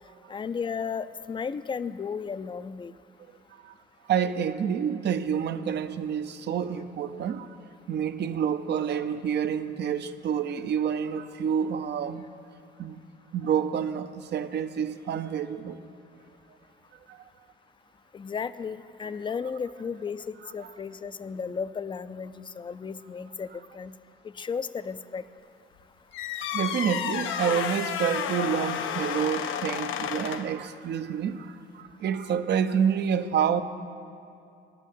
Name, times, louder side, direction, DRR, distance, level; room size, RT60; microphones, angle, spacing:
voice 1, 0.3-2.9 18.1-23.5 23.7-23.9 24.2-25.2, left 6 dB, 25° left, 0.4 m, -34 dB
voice 2, 4.0-7.6 7.9-12.3 12.8-13.0 13.3-15.8 17.1-17.2 20.6-20.7 26.5-33.6, right 8 dB, 60° right, 0.6 m, -28 dB
sound 1, 26.1-30.6, left 8 dB, 80° left, 0.6 m, -31 dB
11.5 x 6.4 x 9.1 m
cardioid pair, 90°, 20 cm